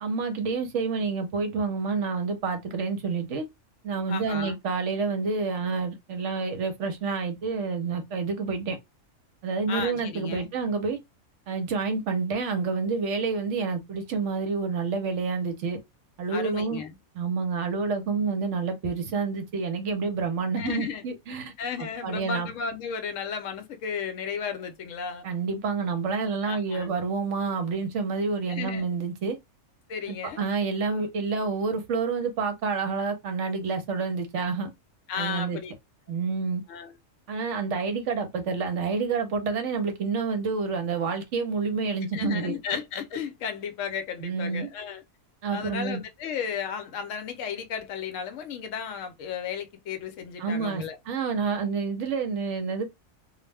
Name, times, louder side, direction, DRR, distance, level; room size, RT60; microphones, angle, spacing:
voice 1, 0.0-3.4 3.8-8.8 9.4-11.0 11.5-15.8 16.2-16.8 17.1-21.5 21.8-22.5 25.2-29.4 30.1-34.7 35.2-35.6 36.1-36.6 37.3-42.6 44.2-44.7 45.4-46.0 50.4-52.9, right 4 dB, 65° right, 0.9 m, -28 dB
voice 2, 4.1-4.6 9.7-10.5 16.3-17.0 20.6-21.0 21.6-25.3 26.4-26.9 28.5-28.8 29.9-30.4 35.1-35.7 36.7-36.9 42.1-45.0 45.5-51.0, left 6 dB, 70° left, 0.9 m, -34 dB
2.4 x 2.0 x 3.2 m
omnidirectional pair, 1.4 m